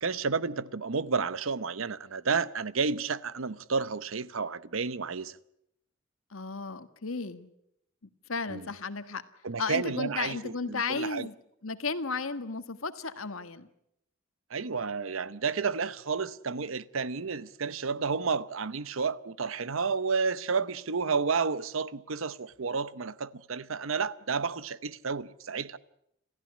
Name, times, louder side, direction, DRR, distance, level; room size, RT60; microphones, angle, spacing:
voice 1, 0.0-5.3 8.5-8.6 9.4-11.3 14.5-25.8, right 5 dB, 70° right, 0.8 m, -31 dB
voice 2, 6.3-7.5 8.3-9.2 9.6-11.3 11.6-13.7, left 4 dB, 80° left, 1.5 m, -34 dB
28.0 x 15.0 x 9.7 m
head